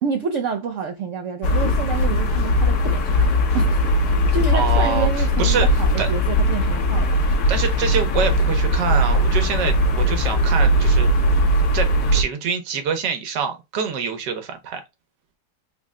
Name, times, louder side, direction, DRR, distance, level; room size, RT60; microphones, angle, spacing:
voice 1, 0.0-3.3 3.5-4.0 4.3-7.2, right 6 dB, 70° right, 0.7 m, -28 dB
sound 1, 1.4-12.2, equal, 70° left, 1.3 m, -19 dB
voice 2, 4.5-5.7 6.0-6.1 7.5-11.1 11.7-14.8, right 6 dB, 85° right, 1.5 m, -25 dB
3.7 x 2.1 x 3.5 m
omnidirectional pair, 1.8 m